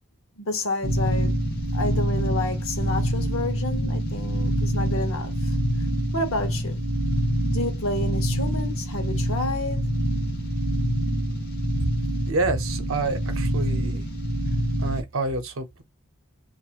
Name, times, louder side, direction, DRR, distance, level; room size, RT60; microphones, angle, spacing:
voice 1, 0.4-1.3 1.7-5.6 6.1-6.8 7.5-9.9, left 2 dB, 70° left, 0.9 m, -30 dB
sound 1, 0.8-15.0, equal, 45° left, 0.9 m, -26 dB
voice 2, 12.3-14.1 14.8-15.8, right 3 dB, 70° right, 0.7 m, -28 dB
3.0 x 2.4 x 2.4 m
head